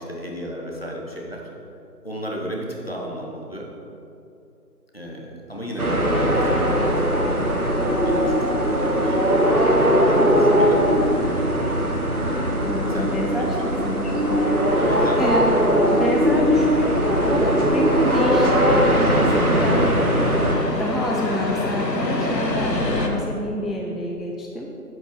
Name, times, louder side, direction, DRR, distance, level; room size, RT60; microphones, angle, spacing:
voice 1, 0.0-1.5 2.0-3.7 4.9-7.1 7.7-9.2 10.1-11.2 12.9-13.8 14.8-15.2, equal, 35° left, -2 dB, 1.2 m, -34 dB
sound 1, 5.5-23.1, left 1 dB, 85° left, 1.5 m, -31 dB
sound 2, 5.8-20.5, equal, 60° right, 1.4 m, -20 dB
voice 2, 12.6-15.5 15.9-20.0 20.7-24.7, equal, ahead, -1 dB, 0.5 m, -28 dB
7.8 x 7.7 x 5.2 m, 2.7 s
figure-of-eight pair, 175°, 48 cm